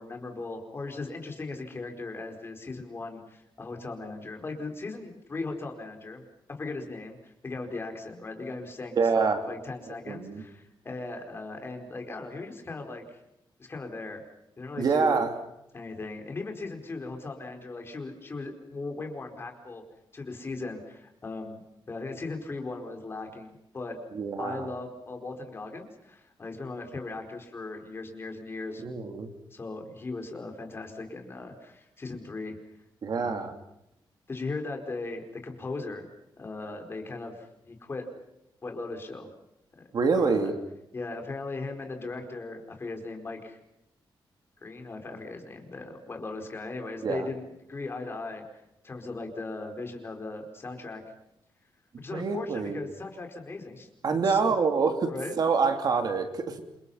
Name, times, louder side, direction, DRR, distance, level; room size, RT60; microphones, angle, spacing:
voice 1, 0.0-6.2 6.6-13.2 13.6-14.2 14.6-15.2 15.7-19.8 20.1-24.0 24.4-28.8 29.5-32.6 33.2-33.5 34.3-36.1 36.4-38.1 38.6-39.3 40.1-40.5 40.9-43.6 44.6-51.0 52.0-53.9 54.2-54.5 55.1-55.4, left 3 dB, 25° left, 4 dB, 4.7 m, -38 dB
voice 2, 9.0-9.4 10.1-10.4 14.8-15.3 24.1-24.7 28.8-29.3 33.0-33.5 39.9-40.5 47.0-47.3 52.1-52.8 54.0-56.6, right 5 dB, 50° right, 6 dB, 2.8 m, -26 dB
29.0 x 27.0 x 5.7 m, 0.84 s
wide cardioid pair, 175°, 9 cm